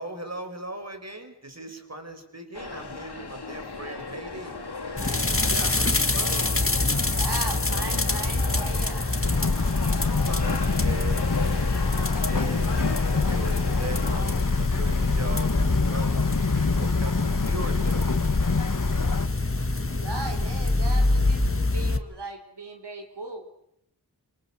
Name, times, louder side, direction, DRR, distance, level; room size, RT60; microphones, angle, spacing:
voice 1, 0.0-4.6 5.0-6.6 10.0-12.7 13.1-16.2 16.5-18.1, right 2 dB, 40° right, 6 dB, 5.4 m, -39 dB
sound 1, 2.5-14.2, left 4 dB, 75° left, 3.0 m, -36 dB
sound 2, 5.0-22.0, left 2 dB, 35° left, 1.7 m, -26 dB
voice 2, 7.1-9.1 19.9-23.5, right 2 dB, 90° right, 4 dB, 3.8 m, -37 dB
sound 3, 9.2-19.3, left 4 dB, 50° left, 1.5 m, -26 dB
26.5 x 26.0 x 7.5 m, 0.75 s
wide cardioid pair, 55°, 40 cm